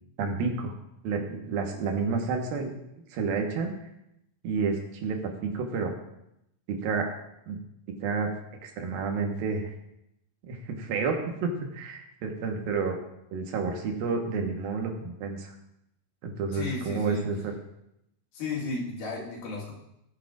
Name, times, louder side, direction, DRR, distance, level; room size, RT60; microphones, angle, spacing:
voice 1, 0.2-0.7 1.0-2.7 3.1-3.7 4.4-5.9 6.7-7.1 7.5-7.6 8.0-8.3 8.6-9.7 10.5-13.0 13.3-15.5 16.2-17.5, right 4 dB, 90° right, 3 dB, 3.1 m, -30 dB
voice 2, 16.5-17.3 18.3-19.7, left 3 dB, 85° left, -4 dB, 4.0 m, -34 dB
19.0 x 7.5 x 2.5 m, 0.82 s
omnidirectional pair, 4.1 m